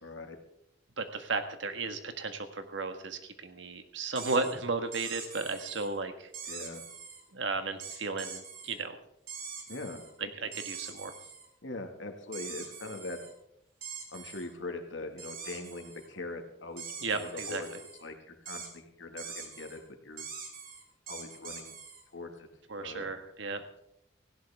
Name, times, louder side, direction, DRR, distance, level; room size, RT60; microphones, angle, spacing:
voice 1, 0.0-0.4 6.5-6.8 9.7-10.0 11.6-13.2 14.1-17.7 18.0-20.2 21.1-21.7 22.1-22.5 22.8-23.0, left 2 dB, 85° left, 5 dB, 2.0 m, -42 dB
voice 2, 1.0-6.3 7.3-9.0 10.2-11.1 17.0-17.6 22.7-23.6, right 3 dB, 85° right, 7 dB, 1.6 m, -34 dB
sound 1, 4.1-4.5 4.9-5.9 6.3-7.2 7.8-8.7 9.3-10.1 10.5-11.5 12.3-13.3 13.8-14.5 15.2-16.1 16.8-18.0 18.5-18.7 19.2-19.8 20.2-22.0, right 6 dB, 50° right, 2.6 m, -43 dB
18.0 x 16.0 x 3.6 m, 0.78 s
head